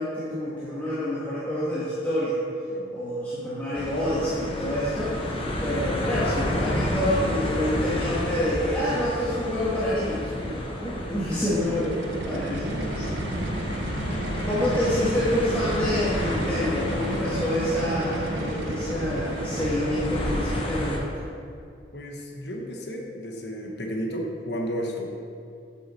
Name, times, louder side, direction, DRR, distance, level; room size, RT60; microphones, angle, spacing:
voice 1, 0.0-2.4 2.9-5.4 5.6-13.1 14.4-21.1, left 1 dB, 10° left, -11 dB, 1.3 m, -27 dB
sound 1, 3.7-21.0, left 1 dB, 30° left, 0.9 m, -30 dB
sound 2, 11.5-20.2, right 2 dB, 75° right, 0.7 m, -33 dB
voice 2, 12.4-13.4 14.1-14.6 21.9-25.1, equal, 60° left, 0 dB, 1.0 m, -34 dB
7.9 x 6.4 x 4.2 m, 2.5 s
head